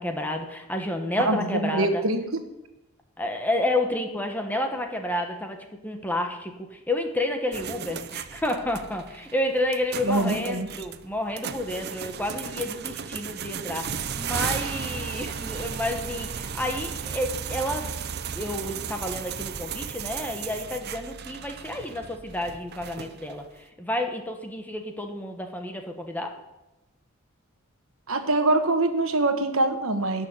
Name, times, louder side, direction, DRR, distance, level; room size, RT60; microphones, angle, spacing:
voice 1, 0.0-2.0 3.2-5.6 5.8-17.9 18.3-23.4 23.8-26.3, left 1 dB, 10° left, 4 dB, 1.3 m, -30 dB
voice 2, 1.2-2.4 10.0-10.7 14.6-14.8 28.1-30.3, right 2 dB, 70° right, 7 dB, 1.4 m, -24 dB
sound 1, 7.5-23.5, right 7 dB, 50° right, 0.7 m, -35 dB
13.0 x 6.4 x 9.7 m, 0.95 s
head